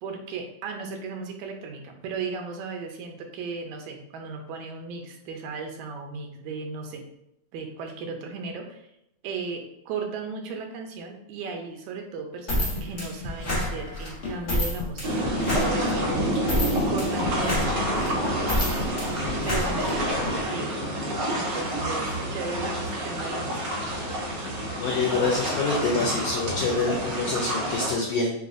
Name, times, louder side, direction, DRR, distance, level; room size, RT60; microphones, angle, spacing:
voice 1, 0.0-7.1 7.5-8.9 9.2-18.2 19.4-20.8 21.3-23.8, right 4 dB, 85° right, 3 dB, 2.1 m, -36 dB
sound 1, 12.5-20.3, left 1 dB, 50° left, 0.6 m, -29 dB
sound 2, 15.0-27.9, equal, 60° right, 1.1 m, -28 dB
voice 2, 24.8-28.3, left 3 dB, 85° left, -1 dB, 1.3 m, -26 dB
6.9 x 2.4 x 2.6 m, 0.80 s
omnidirectional pair, 3.3 m